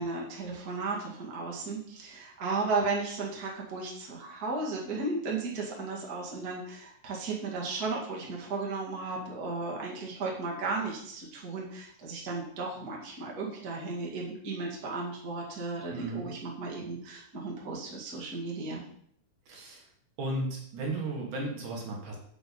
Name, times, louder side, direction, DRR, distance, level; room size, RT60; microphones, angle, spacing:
voice 1, 0.0-18.8, right 3 dB, 30° right, -2 dB, 2.0 m, -35 dB
voice 2, 15.9-16.3 19.5-19.8 20.2-22.2, right 2 dB, 65° right, -1 dB, 3.1 m, -34 dB
7.6 x 6.8 x 5.5 m, 0.66 s
omnidirectional pair, 4.1 m